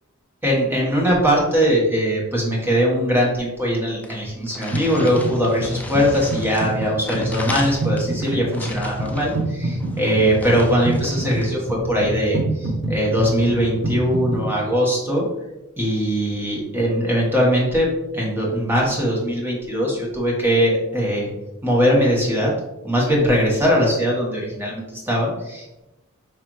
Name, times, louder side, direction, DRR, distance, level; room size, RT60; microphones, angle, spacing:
voice 1, 0.4-15.3 15.8-17.9 18.1-21.3 21.6-22.5 22.8-25.8, equal, 10° right, -3 dB, 1.2 m, -21 dB
sound 1, 3.7-3.8 4.0-11.5, left 2 dB, 5° left, 0.3 m, -37 dB
sound 2, 4.7-5.4 5.6-14.5, right 1 dB, 60° right, 0.9 m, -26 dB
5.0 x 3.3 x 3.0 m, 0.97 s
head